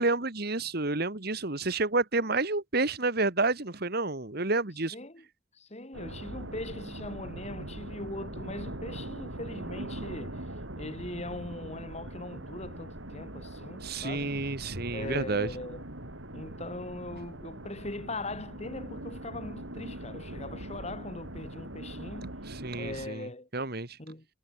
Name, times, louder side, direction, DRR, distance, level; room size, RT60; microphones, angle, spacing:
voice 1, 0.0-5.0 13.8-15.5 22.5-23.3 23.5-24.0, right 3 dB, 55° right, 2.1 m, -29 dB
voice 2, 4.9-5.2 5.5-10.4 10.8-14.4 14.9-15.8 16.3-22.3 22.7-23.5 24.0-24.3, left 2 dB, 35° left, 3.8 m, -40 dB
sound 1, 5.9-23.1, right 1 dB, 85° right, 5.8 m, -41 dB
head